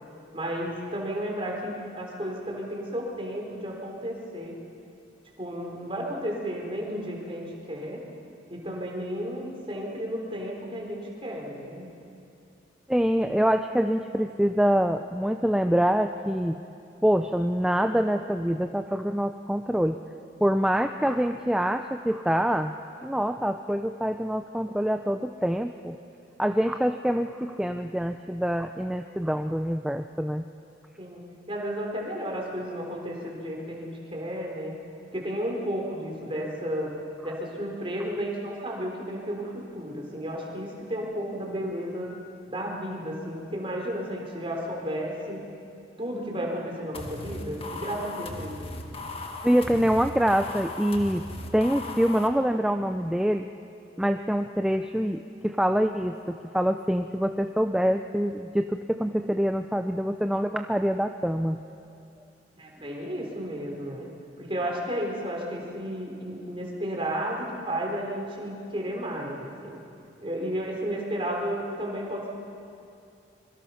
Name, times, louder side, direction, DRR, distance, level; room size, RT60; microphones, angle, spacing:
voice 1, 0.3-4.5 5.4-8.0 8.5-11.9 31.0-34.7 35.1-36.9 37.2-42.1 42.5-45.4 46.0-48.6 62.6-64.1 64.4-69.8 70.2-72.3, equal, 30° right, -1 dB, 3.9 m, -33 dB
voice 2, 12.9-16.6 17.0-20.0 20.4-22.7 23.0-26.0 26.4-30.4 49.4-51.2 51.5-53.5 54.0-61.6, equal, 5° right, 6 dB, 0.4 m, -25 dB
sound 1, 46.9-52.3, left 2 dB, 30° left, 1.6 m, -37 dB
25.0 x 23.5 x 5.8 m, 2.6 s
head